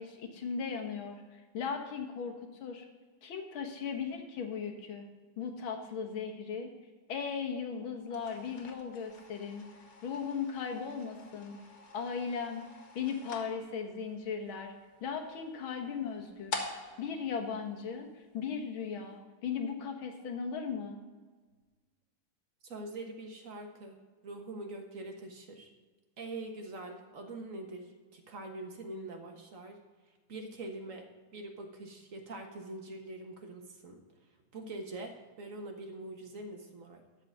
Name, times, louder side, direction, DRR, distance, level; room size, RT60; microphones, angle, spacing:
voice 1, 0.0-2.3 2.6-2.9 3.2-5.1 5.4-6.7 7.1-9.6 10.0-11.6 11.9-12.7 13.0-14.7 15.0-16.6 17.0-21.0, left 6 dB, 90° left, 4 dB, 2.1 m, -37 dB
sound 1, 8.0-18.4, left 4 dB, 65° left, 2.3 m, -47 dB
voice 2, 22.6-24.0 24.2-25.7 26.2-29.8 30.3-34.0 34.5-37.0, right 2 dB, 45° right, 4 dB, 1.6 m, -44 dB
13.0 x 5.0 x 7.9 m, 1.4 s
omnidirectional pair, 2.2 m